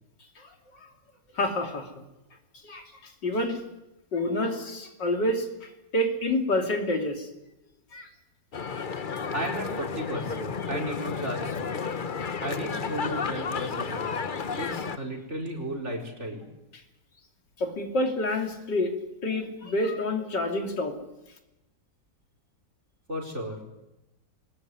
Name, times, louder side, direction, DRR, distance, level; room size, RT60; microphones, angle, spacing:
voice 1, 1.3-1.9 2.6-3.6 4.1-7.3 7.9-8.1 17.6-18.9 19.2-21.0, left 1 dB, 85° left, 3 dB, 3.7 m, -28 dB
sound 1, 8.5-15.0, left 5 dB, 40° left, 0.8 m, -32 dB
voice 2, 9.3-11.9 12.4-14.1 14.6-16.5 23.1-23.6, right 1 dB, 40° right, 1 dB, 5.0 m, -34 dB
22.0 x 20.0 x 9.7 m, 0.95 s
omnidirectional pair, 1.8 m